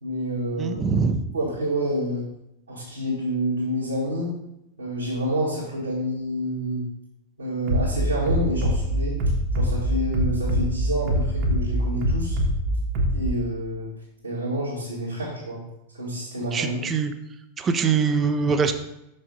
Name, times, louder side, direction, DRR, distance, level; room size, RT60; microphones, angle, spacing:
voice 1, 0.0-0.8 1.3-2.3 2.7-4.3 4.8-6.8 7.4-9.2 9.6-12.4 13.1-13.9 14.2-15.6 15.9-16.8, equal, 75° right, -8 dB, 1.9 m, -28 dB
voice 2, 0.6-1.2 16.5-17.1 17.6-18.7, right 5 dB, 25° right, 8 dB, 0.6 m, -23 dB
Bass drum, 7.7-13.3, equal, 45° right, 1.2 m, -24 dB
6.3 x 5.4 x 3.9 m, 0.86 s
figure-of-eight pair, 90°, 0 cm